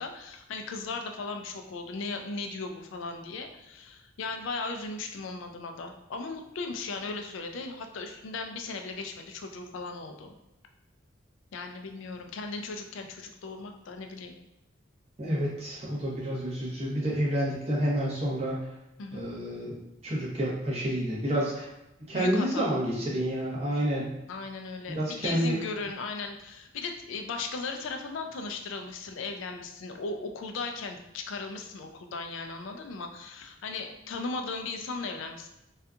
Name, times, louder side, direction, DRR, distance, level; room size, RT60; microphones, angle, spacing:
voice 1, 0.0-10.3 11.5-14.4 19.0-19.3 22.1-22.7 24.3-35.5, left 3 dB, 75° left, 5 dB, 0.3 m, -37 dB
voice 2, 15.2-18.7 19.1-19.8 20.0-21.7 22.1-24.1 24.9-25.5, equal, 30° right, -6 dB, 0.8 m, -29 dB
2.7 x 2.3 x 2.3 m, 0.91 s
head